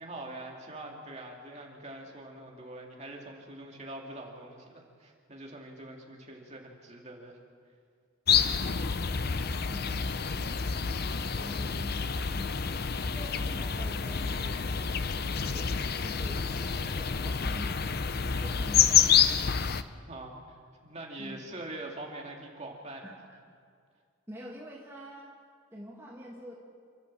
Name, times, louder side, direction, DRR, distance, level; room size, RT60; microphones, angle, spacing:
voice 1, 0.0-7.4 19.9-20.6 20.8-23.2, right 1 dB, 30° right, 0 dB, 2.8 m, -44 dB
sound 1, 8.3-19.8, left 7 dB, 45° left, 0.7 m, -28 dB
voice 2, 9.7-10.6 11.0-17.9 18.3-19.3 21.2-21.4 23.0-23.1 23.5-23.6 24.3-25.3 25.7-26.5, equal, 10° right, -4 dB, 2.0 m, -46 dB
28.0 x 13.0 x 7.7 m, 2.1 s
head